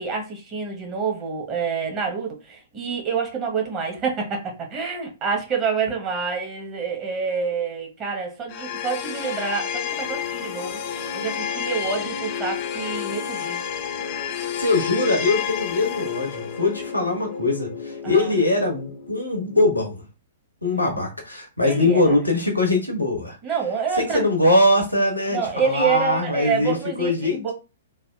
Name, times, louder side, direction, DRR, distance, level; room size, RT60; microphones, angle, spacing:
voice 1, 0.0-10.8 11.1-13.6 18.0-18.3 21.6-22.1 23.4-24.3 25.3-27.5, right 5 dB, 25° right, 1 dB, 0.9 m, -27 dB
sound 1, 8.5-19.6, left 8 dB, 35° left, 0.4 m, -30 dB
voice 2, 14.6-20.0 20.6-23.4 23.9-27.5, left 2 dB, 90° left, 2 dB, 0.9 m, -22 dB
3.4 x 2.1 x 2.2 m, 0.30 s
figure-of-eight pair, 110°, 0 cm